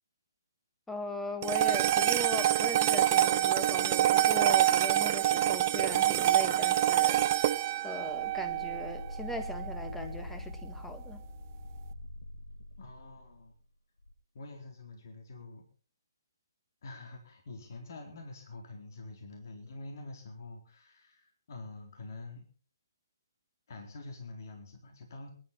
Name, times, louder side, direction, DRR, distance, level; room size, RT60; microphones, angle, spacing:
voice 1, 0.9-7.5 7.8-11.2, left 1 dB, 5° left, 7 dB, 1.7 m, -39 dB
sound 1, 1.4-9.9, right 12 dB, 35° right, 0.6 m, -26 dB
sound 2, 8.0-13.5 14.0-14.1, left 1 dB, 80° left, 2.0 m, -44 dB
voice 2, 12.8-13.5 14.3-15.6 16.8-22.5 23.7-25.3, left 2 dB, 50° left, 3 dB, 4.1 m, -46 dB
22.0 x 11.5 x 4.4 m, 0.41 s
figure-of-eight pair, 140°, 2 cm